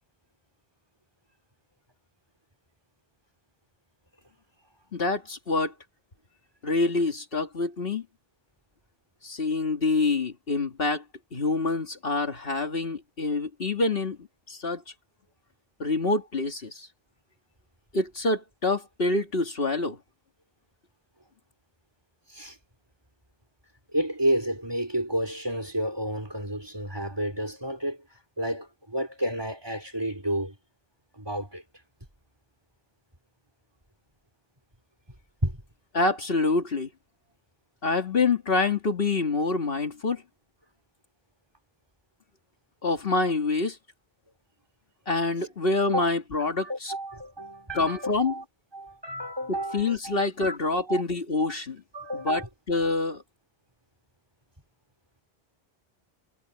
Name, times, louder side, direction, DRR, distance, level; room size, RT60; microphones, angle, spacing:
voice 1, 4.9-5.7 6.6-8.0 9.2-11.0 11.3-14.8 15.8-16.9 17.9-20.0 35.9-36.9 37.8-40.2 42.8-43.8 45.1-46.9 47.7-48.3 49.5-51.8 52.1-53.2, left 3 dB, 60° left, 2.2 m, -26 dB
voice 2, 23.9-28.0 28.4-30.5 31.1-31.6 35.4-35.6 45.8-46.1 46.6-48.4 48.7-51.0 51.4-51.5 51.9-52.5, right 1 dB, 25° right, 3.7 m, -31 dB
omnidirectional pair, 1.1 m